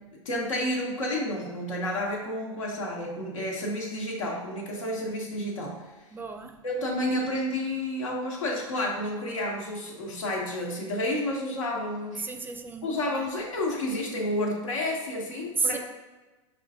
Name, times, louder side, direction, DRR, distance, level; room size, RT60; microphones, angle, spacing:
voice 1, 0.1-6.1 6.6-12.3 12.8-15.8, left 1 dB, 80° left, 1.2 m, -30 dB
voice 2, 6.1-6.6 12.2-12.9 15.6-15.8, right 4 dB, 10° right, 0.4 m, -31 dB
5.5 x 2.6 x 3.5 m
hypercardioid pair, 100°, 16 cm